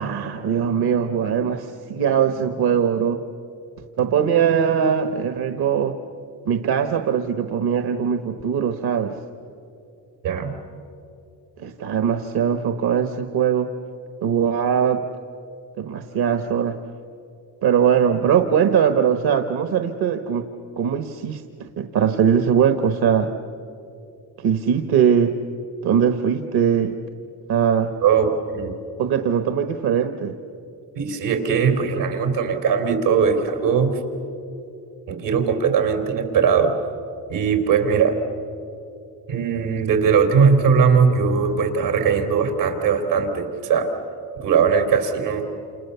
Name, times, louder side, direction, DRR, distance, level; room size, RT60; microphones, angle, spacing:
voice 1, 0.0-3.2 4.0-6.0 6.4-9.2 11.6-13.7 14.2-15.0 15.8-16.8 17.6-20.4 20.8-23.3 24.4-25.3 25.8-26.9 27.5-27.9 29.0-30.4, right 8 dB, 65° right, 7 dB, 1.3 m, -21 dB
voice 2, 10.2-10.5 28.0-28.7 31.0-34.0 35.1-36.7 37.3-38.2 39.3-43.9 44.4-45.5, right 6 dB, 85° right, 5 dB, 3.7 m, -19 dB
28.5 x 28.0 x 7.0 m, 2.7 s
cardioid pair, 85°, 41 cm